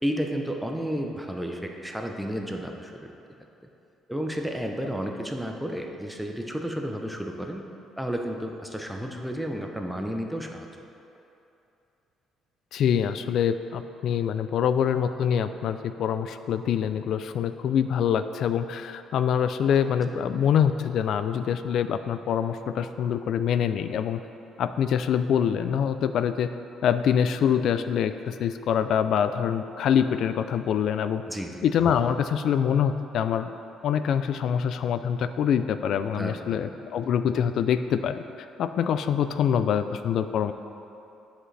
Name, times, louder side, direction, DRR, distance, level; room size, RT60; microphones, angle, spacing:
voice 1, 0.0-3.1 4.1-7.6 8.0-10.7 31.3-31.6 36.1-36.6, equal, 5° right, 2 dB, 0.6 m, -32 dB
voice 2, 12.7-24.2 24.6-26.5 26.8-31.2 31.6-33.5 33.8-38.2 38.6-40.5, left 8 dB, 65° left, 11 dB, 0.3 m, -25 dB
10.0 x 5.0 x 3.3 m, 2.8 s
cardioid pair, 110°, 0 cm